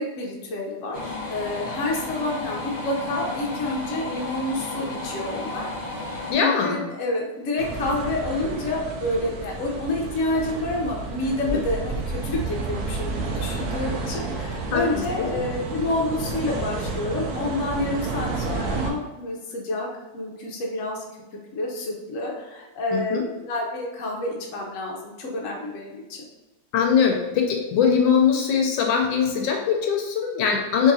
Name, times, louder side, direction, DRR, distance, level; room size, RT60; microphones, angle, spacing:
voice 1, 0.0-5.7 6.4-19.9 20.1-21.0 21.5-26.2, left 2 dB, 60° left, -2 dB, 0.8 m, -28 dB
sound 1, 0.9-6.3, left 2 dB, 40° left, 1.1 m, -33 dB
voice 2, 6.3-6.8 11.5-11.6 14.7-14.8 15.2-15.3 22.9-23.2 26.7-30.9, left 6 dB, 80° left, 1 dB, 1.3 m, -21 dB
sound 2, 7.6-18.9, right 3 dB, 70° right, 0.9 m, -31 dB
3.8 x 2.9 x 2.7 m, 1.1 s
omnidirectional pair, 2.1 m